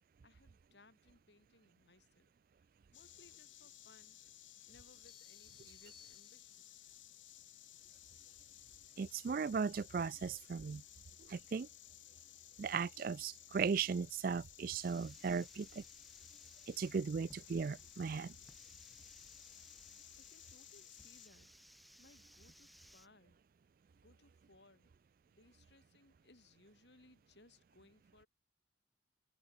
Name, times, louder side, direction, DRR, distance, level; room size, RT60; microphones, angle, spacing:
voice 1, 0.2-2.3 2.9-4.2 4.7-6.7 20.2-21.5 22.0-23.4 23.9-24.9 25.3-28.3, left 2 dB, 65° left, 3.5 m, -66 dB
Insect, 2.9-21.3, left 13 dB, 85° left, 2.8 m, -58 dB
sound 1, 5.1-6.9, left 7 dB, 25° left, 1.5 m, -63 dB
voice 2, 9.0-10.8 11.3-11.7 12.6-15.8 16.7-18.3, right 5 dB, 50° right, 0.3 m, -37 dB
sound 2, 14.8-23.1, equal, ahead, 1.1 m, -63 dB
head